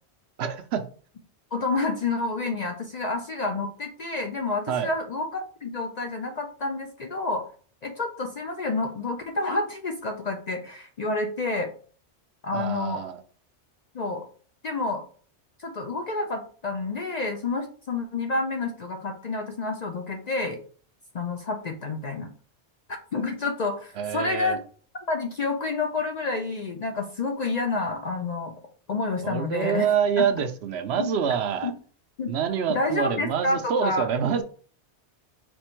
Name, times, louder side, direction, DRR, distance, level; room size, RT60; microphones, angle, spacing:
voice 1, 0.4-0.8 4.7-4.9 12.5-13.2 24.0-24.6 29.2-31.7 32.3-34.4, right 7 dB, 70° right, 8 dB, 0.8 m, -26 dB
voice 2, 1.5-7.4 7.8-11.7 12.4-13.0 13.9-14.3 14.6-15.0 15.6-20.6 21.1-22.3 23.1-24.6 25.1-28.5 28.9-29.9 30.2-30.3 31.0-31.1 31.6-31.7 32.2-32.3 32.7-34.1, left 3 dB, 50° left, 4 dB, 0.5 m, -29 dB
4.3 x 2.6 x 4.3 m, 0.43 s
omnidirectional pair, 1.2 m